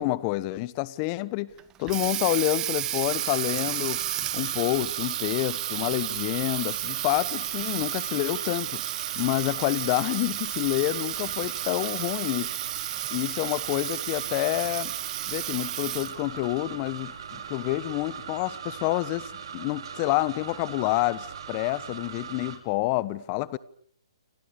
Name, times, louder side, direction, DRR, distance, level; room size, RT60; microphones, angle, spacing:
voice 1, 0.0-1.5 1.8-4.0 4.3-8.8 9.2-12.5 13.1-14.9 15.3-23.6, left 19 dB, 30° left, 1.1 m, -28 dB
Water tap faucet, 1.6-16.3, right 14 dB, 20° right, 1.4 m, -32 dB
sound 1, 3.1-22.6, right 7 dB, 60° right, 5.3 m, -40 dB
30.0 x 26.5 x 6.9 m
hypercardioid pair, 140°, 3 cm